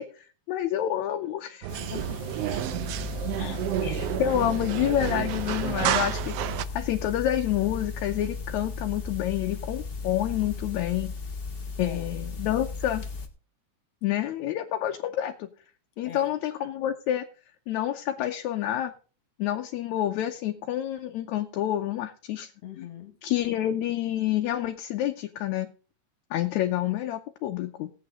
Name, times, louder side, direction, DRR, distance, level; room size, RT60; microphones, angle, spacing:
voice 1, 0.0-1.7 3.8-11.1 11.8-13.0 14.0-15.5 16.0-17.3 17.7-18.9 19.4-22.5 22.8-22.9 23.2-25.7 26.3-27.9, left 12 dB, 75° left, 2.1 m, -28 dB
sound 1, 1.6-6.6, right 12 dB, 75° right, 1.5 m, -30 dB
voice 2, 1.7-2.7 3.4-3.9 4.5-4.8 9.5-9.6 11.7-12.1 16.0-16.3 22.6-23.2, left 8 dB, 55° left, 2.6 m, -43 dB
sound 2, 1.7-13.3, left 4 dB, 30° left, 1.1 m, -36 dB
17.5 x 8.3 x 3.7 m
omnidirectional pair, 3.4 m